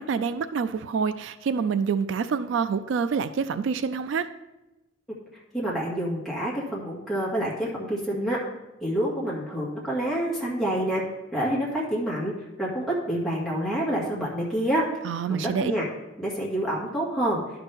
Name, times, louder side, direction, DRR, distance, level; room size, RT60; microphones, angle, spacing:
voice 1, 0.0-4.3 15.0-15.7, right 6 dB, 75° right, 13 dB, 0.3 m, -27 dB
voice 2, 5.5-8.4 8.8-11.0 11.3-14.8 15.3-15.9 16.2-17.4, right 1 dB, ahead, -6 dB, 2.0 m, -27 dB
11.0 x 5.9 x 3.5 m, 0.99 s
head